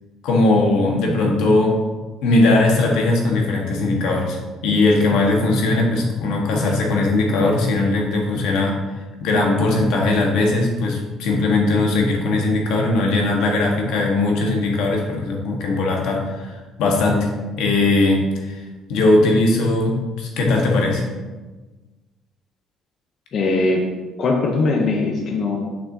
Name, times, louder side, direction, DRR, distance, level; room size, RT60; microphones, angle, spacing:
voice 1, 0.2-1.8 2.2-4.4 4.6-8.8 9.2-17.3 17.6-18.6 18.9-21.1, left 2 dB, 80° left, 0 dB, 1.3 m, -19 dB
voice 2, 23.3-23.8 24.2-25.6, left 3 dB, 40° left, 0 dB, 0.7 m, -20 dB
6.9 x 5.9 x 2.7 m, 1.2 s
cardioid pair, 175°, 0 cm